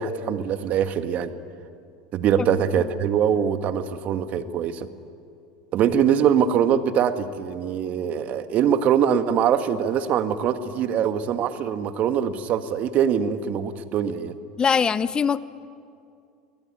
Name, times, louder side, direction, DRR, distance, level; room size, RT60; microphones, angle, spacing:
voice 1, 0.0-1.3 2.1-4.9 5.7-14.4, right 8 dB, 50° right, 10 dB, 1.5 m, -23 dB
voice 2, 14.6-15.4, left 6 dB, 25° left, 17 dB, 0.6 m, -21 dB
21.5 x 19.5 x 9.9 m, 2.4 s
hypercardioid pair, 95°, 3 cm